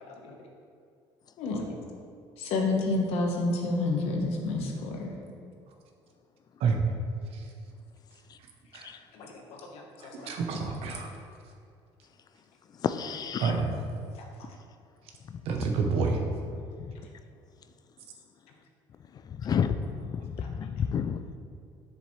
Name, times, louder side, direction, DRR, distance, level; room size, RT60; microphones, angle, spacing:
voice 1, 2.4-5.1 9.1-9.3 9.7-10.3, left 2 dB, 75° left, 1 dB, 1.3 m, -29 dB
voice 2, 10.2-11.1 13.4-13.6 15.5-16.2, right 5 dB, 75° right, 3 dB, 1.0 m, -27 dB
voice 3, 12.8-13.6 16.8-16.9 19.3-21.2, left 7 dB, 40° left, 10 dB, 0.4 m, -30 dB
7.2 x 6.9 x 3.3 m, 2.5 s
cardioid pair, 105°, 10 cm